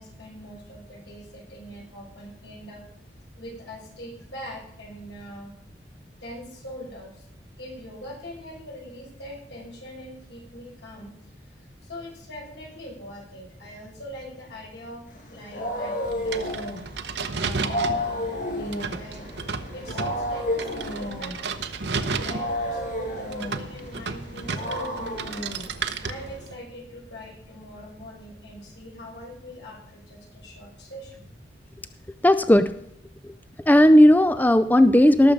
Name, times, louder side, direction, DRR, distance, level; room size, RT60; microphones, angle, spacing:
voice 1, 0.0-2.9 3.4-5.5 6.2-7.3 7.6-15.0 15.3-16.8 17.3-19.3 19.7-21.7 22.0-25.4 25.7-31.3, equal, 80° left, -2 dB, 6.4 m, -42 dB
Wild animals, 15.1-26.3, left 1 dB, 50° left, 6.9 m, -32 dB
sound 1, 16.0-26.6, right 4 dB, 70° right, 1.0 m, -33 dB
voice 2, 32.2-32.7 33.7-35.3, left 1 dB, 10° left, 12 dB, 0.4 m, -15 dB
18.5 x 7.0 x 5.1 m, 0.70 s
head